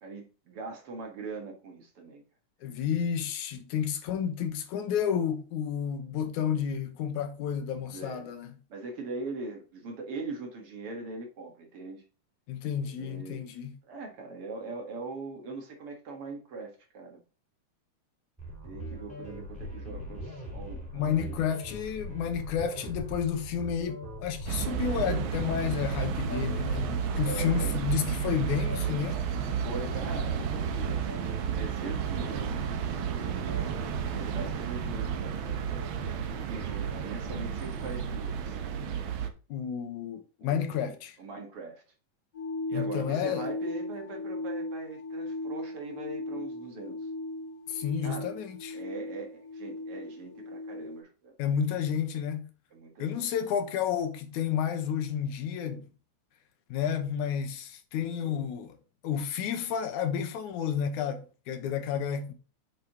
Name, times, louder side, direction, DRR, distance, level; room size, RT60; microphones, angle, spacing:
voice 1, 0.0-2.2 7.8-8.3 8.7-12.0 12.8-13.4 13.9-17.2 18.6-21.4 25.0-25.3 27.2-27.8 29.6-31.2 31.5-33.8 34.1-35.7 36.2-38.6 40.4-41.8 42.7-47.1 48.0-48.3 48.7-51.3 52.7-53.3 58.2-58.4, right 3 dB, 55° right, 2.3 m, -41 dB
voice 2, 2.6-8.5 12.5-13.7 20.9-29.3 39.5-41.2 42.7-43.5 47.7-48.8 51.4-52.5 53.0-55.9 56.7-58.8 59.0-62.3, left 8 dB, 85° left, 2.5 m, -31 dB
sound 1, 18.4-38.0, equal, ahead, 4.0 m, -42 dB
sound 2, 24.5-39.3, right 7 dB, 75° right, 1.1 m, -32 dB
sound 3, 42.3-51.0, left 2 dB, 55° left, 3.4 m, -37 dB
8.3 x 6.1 x 2.9 m
omnidirectional pair, 3.4 m